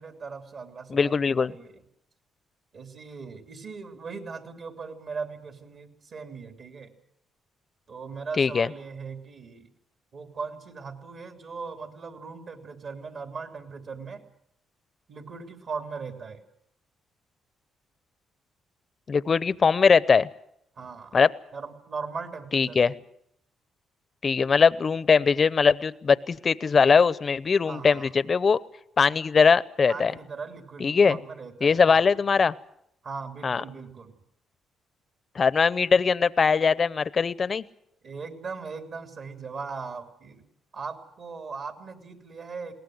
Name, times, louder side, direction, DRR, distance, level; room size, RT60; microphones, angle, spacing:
voice 1, 0.0-1.8 2.7-6.9 7.9-9.7 10.1-14.2 15.1-16.4 20.7-21.2 21.5-23.0 27.7-28.1 29.9-32.1 33.0-34.2 38.0-40.4 40.7-42.7, right 5 dB, 55° right, 5 dB, 3.2 m, -39 dB
voice 2, 0.9-1.5 8.4-8.7 19.1-20.3 21.1-21.3 22.5-22.9 24.2-28.6 29.0-30.1 30.8-31.2 31.6-32.5 33.4-33.6 35.4-37.6, left 5 dB, 40° left, 18 dB, 0.7 m, -21 dB
22.0 x 18.0 x 7.9 m, 0.74 s
cardioid pair, 90°, 0 cm